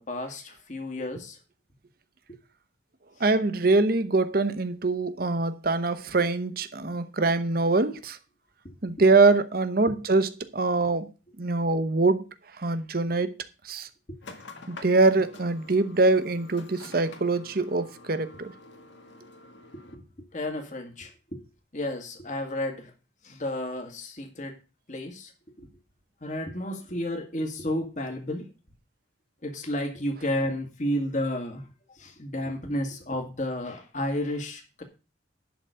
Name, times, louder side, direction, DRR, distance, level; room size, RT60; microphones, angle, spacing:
voice 1, 0.0-1.4 19.9-20.0 20.3-21.4 21.7-22.9 23.2-24.6 24.9-25.3 25.6-25.7 26.2-28.5 29.4-31.7 32.0-34.8, left 1 dB, 40° left, 1.8 m, -32 dB
voice 2, 3.2-8.2 8.8-11.1 11.4-12.2 12.6-13.3 13.6-13.9 14.7-18.5, right 3 dB, 50° right, 0.9 m, -24 dB
sound 1, 14.2-19.9, left 2 dB, 80° left, 1.6 m, -47 dB
11.5 x 4.0 x 7.9 m
head